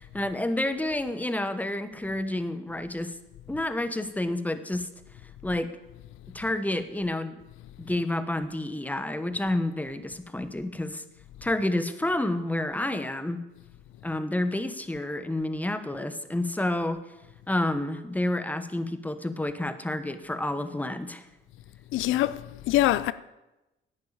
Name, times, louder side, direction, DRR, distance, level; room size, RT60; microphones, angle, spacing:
voice 1, 0.0-3.1 3.5-4.9 5.4-5.7 6.3-7.4 7.8-11.0 11.4-13.4 14.0-17.0 17.5-21.3, left 1 dB, 10° left, 1.2 m, -29 dB
voice 2, 21.9-23.1, left 14 dB, 90° left, 0.5 m, -24 dB
11.0 x 9.4 x 8.8 m
cardioid pair, 90°, 20 cm